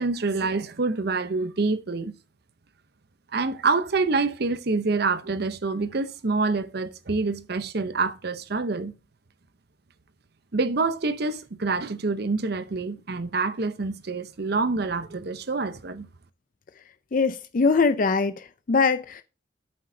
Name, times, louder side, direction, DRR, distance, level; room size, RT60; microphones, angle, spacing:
voice 1, 0.0-2.1 3.3-8.9 10.5-16.1, right 3 dB, 60° right, 0.7 m, -26 dB
voice 2, 17.1-19.2, left 4 dB, 45° left, 0.4 m, -22 dB
8.8 x 7.7 x 2.7 m
head